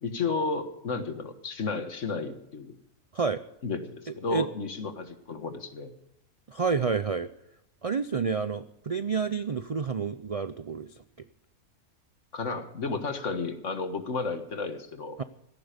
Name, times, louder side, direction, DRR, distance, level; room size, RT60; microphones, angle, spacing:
voice 1, 0.0-2.7 3.6-5.9 12.3-15.2, left 4 dB, 60° left, 8 dB, 1.9 m, -32 dB
voice 2, 6.5-7.3 7.8-10.9 15.2-15.3, right 5 dB, 60° right, 12 dB, 0.3 m, -29 dB
16.5 x 14.5 x 5.1 m, 0.78 s
omnidirectional pair, 1.5 m